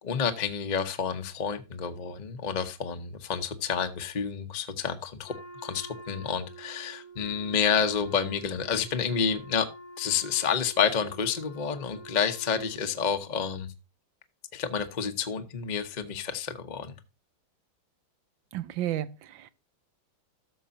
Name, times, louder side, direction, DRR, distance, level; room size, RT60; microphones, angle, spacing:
voice 1, 0.0-5.3 5.6-9.7 10.0-13.7 14.5-17.0, left 6 dB, 35° left, 0.8 m, -29 dB
Wind instrument woodwind instrument, 5.2-13.2, right 2 dB, 90° left, 4.1 m, -47 dB
voice 2, 18.5-19.5, right 12 dB, 75° right, 1.5 m, -32 dB
13.5 x 6.7 x 2.7 m
omnidirectional pair, 2.2 m